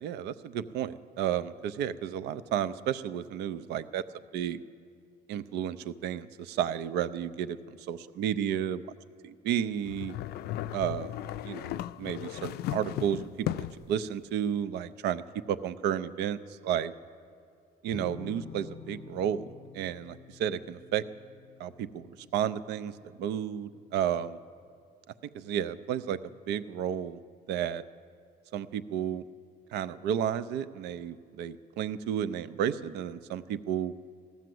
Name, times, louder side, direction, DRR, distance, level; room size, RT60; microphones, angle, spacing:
voice 1, 0.0-4.0 4.3-4.6 5.3-8.8 9.2-10.2 10.7-15.2 15.5-16.9 17.8-21.0 21.6-24.4 25.3-27.2 27.5-27.8 28.5-29.2 29.7-33.9, right 9 dB, 80° right, 14 dB, 0.5 m, -32 dB
mp garbage cans, 9.9-13.9, left 13 dB, 70° left, 0.4 m, -36 dB
sound 1, 17.9-23.5, left 7 dB, 25° left, 0.6 m, -49 dB
15.0 x 12.0 x 7.7 m, 2.3 s
cardioid pair, 110°, 17 cm